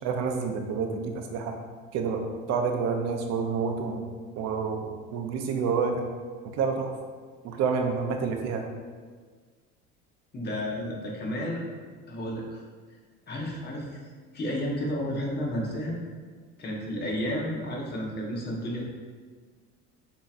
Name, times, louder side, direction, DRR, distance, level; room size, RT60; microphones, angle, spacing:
voice 1, 0.0-1.5 1.9-4.0 4.4-6.0 6.4-6.9 7.4-8.6, right 5 dB, 60° right, 4 dB, 0.6 m, -28 dB
voice 2, 10.3-11.6 12.1-12.5 13.3-14.0 14.3-16.0 16.6-18.9, equal, 35° left, -2 dB, 1.1 m, -31 dB
6.6 x 2.9 x 2.5 m, 1.5 s
cardioid pair, 110°, 29 cm